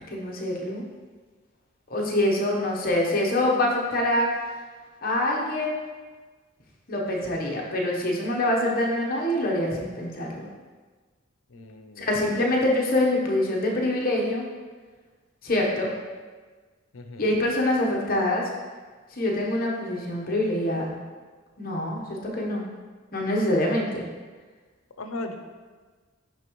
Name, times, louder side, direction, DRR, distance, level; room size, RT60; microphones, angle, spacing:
voice 1, 0.1-0.8 1.9-4.3 5.0-5.8 6.9-10.5 12.0-14.5 15.4-15.9 17.2-18.5 19.1-20.9 21.6-22.7 23.1-24.0, left 1 dB, 45° left, -2 dB, 0.9 m, -25 dB
voice 2, 11.5-12.2 16.9-17.4 25.0-25.3, left 2 dB, 80° left, 6 dB, 0.6 m, -37 dB
10.5 x 3.5 x 3.0 m, 1.4 s
head